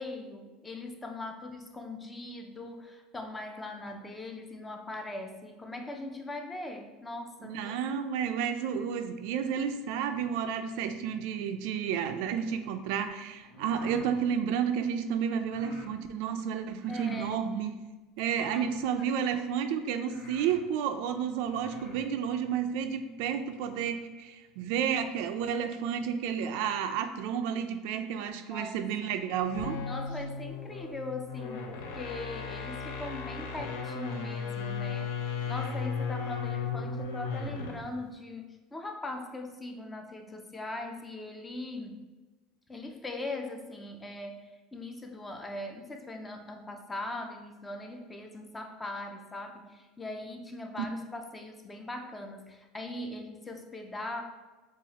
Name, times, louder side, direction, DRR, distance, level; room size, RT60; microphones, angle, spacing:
voice 1, 0.0-7.7 16.9-17.4 18.5-18.6 19.0-19.1 28.5-28.8 29.9-42.0 42.7-54.2, left 2 dB, 10° left, 4 dB, 0.4 m, -40 dB
voice 2, 7.4-17.7 18.2-29.8, right 8 dB, 65° right, 8 dB, 0.3 m, -31 dB
sound 1, 13.4-14.2 15.4-15.9 16.8-17.3 18.3-18.9 19.6-19.7 20.0-20.6 21.4-22.0, equal, 60° left, 1.5 m, -48 dB
sound 2, 29.4-37.9, left 5 dB, 85° left, 0.7 m, -36 dB
7.0 x 2.4 x 2.8 m, 1.2 s
cardioid pair, 165°, 0 cm